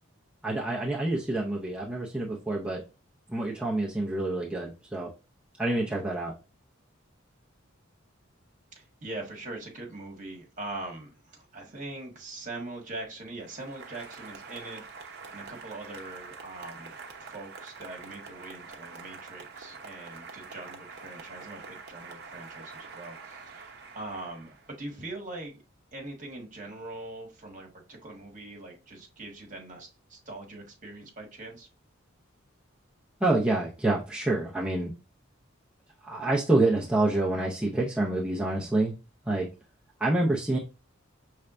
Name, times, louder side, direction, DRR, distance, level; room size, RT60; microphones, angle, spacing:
voice 1, 0.4-2.8 3.3-5.1 5.6-6.3 33.2-34.9 36.0-38.9 39.3-39.5 40.0-40.6, right 2 dB, 5° right, 0.6 m, -27 dB
voice 2, 8.7-16.9 17.2-25.6 25.9-31.7, right 2 dB, 40° right, 1.4 m, -42 dB
Applause, 13.4-24.9, right 5 dB, 55° right, 0.8 m, -46 dB
5.5 x 3.3 x 2.5 m
head